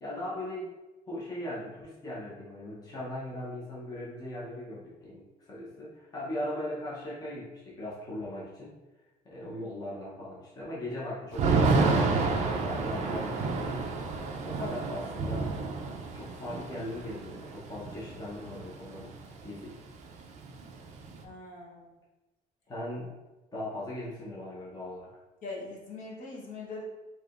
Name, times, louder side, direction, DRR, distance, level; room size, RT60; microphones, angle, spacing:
voice 1, 0.0-0.7 1.1-8.8 9.2-12.2 12.6-13.7 14.4-15.5 16.1-19.1 19.4-19.8 22.7-23.1 23.5-25.1, left 1 dB, 25° left, -7 dB, 0.8 m, -39 dB
Thunder / Rain, 11.3-19.2 19.5-19.6 19.9-21.2, right 4 dB, 45° right, 0.4 m, -30 dB
voice 2, 21.2-21.9 25.4-26.8, left 3 dB, 55° left, -4 dB, 1.0 m, -42 dB
4.7 x 2.8 x 2.5 m, 1.1 s
cardioid pair, 170°, 16 cm